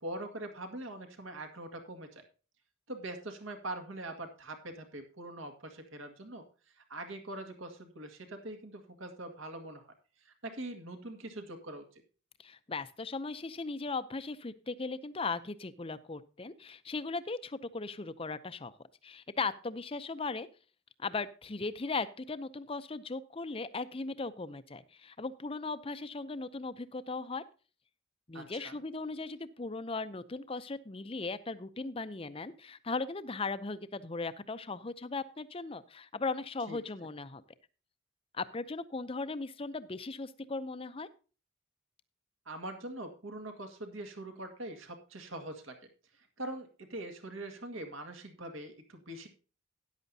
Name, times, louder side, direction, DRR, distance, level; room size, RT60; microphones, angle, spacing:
voice 1, 0.0-2.2 2.9-6.4 6.8-9.9 10.2-11.9 28.3-28.8 36.7-36.8 42.5-45.8 46.4-49.3, right 1 dB, 70° right, 6 dB, 2.0 m, -43 dB
voice 2, 12.4-18.7 19.0-20.5 21.0-27.4 28.3-37.4 38.3-41.1, left 3 dB, 25° left, 13 dB, 0.5 m, -38 dB
13.5 x 10.5 x 2.8 m, 0.35 s
head